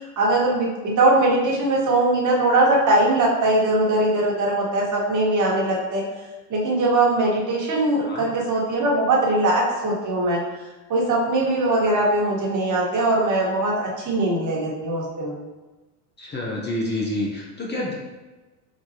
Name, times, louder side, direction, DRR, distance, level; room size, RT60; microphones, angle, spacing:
voice 1, 0.2-6.0 6.5-10.4 10.9-15.3, right 2 dB, 40° right, -2 dB, 1.5 m, -21 dB
voice 2, 16.2-18.0, left 1 dB, 20° left, -3 dB, 0.8 m, -28 dB
4.5 x 4.2 x 2.8 m, 1.2 s
hypercardioid pair, 95°, 49 cm